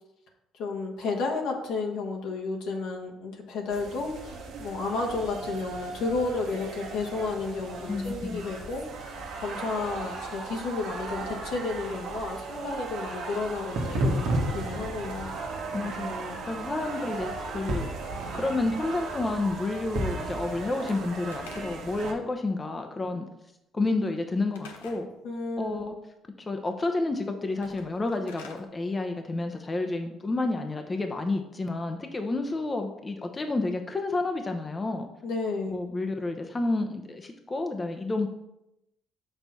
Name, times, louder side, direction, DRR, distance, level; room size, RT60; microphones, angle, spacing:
voice 1, 0.6-15.3 25.2-25.9 35.2-35.8, left 3 dB, 75° left, 0 dB, 1.3 m, -32 dB
sound 1, 3.7-22.1, right 2 dB, 75° right, 1.2 m, -35 dB
voice 2, 7.9-8.4 15.7-17.9 18.3-23.3 23.7-25.1 25.6-25.9 26.4-35.1 35.7-38.3, left 2 dB, 30° left, 5 dB, 0.8 m, -30 dB
Slam / Wood, 20.7-22.0 24.5-25.1 27.5-28.7, left 5 dB, 90° left, 0.7 m, -48 dB
5.5 x 4.0 x 6.0 m, 0.87 s
hypercardioid pair, 60°, 0 cm